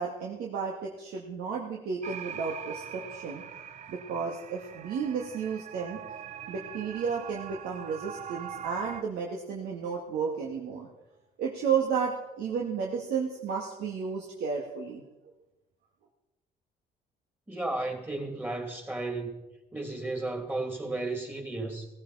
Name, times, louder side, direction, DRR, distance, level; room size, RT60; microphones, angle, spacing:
voice 1, 0.0-3.4 3.9-6.0 6.5-10.9 11.4-15.0, right 6 dB, 75° right, 2.0 m, -32 dB
sound 1, 2.0-9.0, right 8 dB, 45° right, 0.8 m, -42 dB
voice 2, 17.5-19.4 19.7-21.9, right 2 dB, 10° right, 2.7 m, -34 dB
17.0 x 15.0 x 4.2 m
cardioid pair, 110°, 17 cm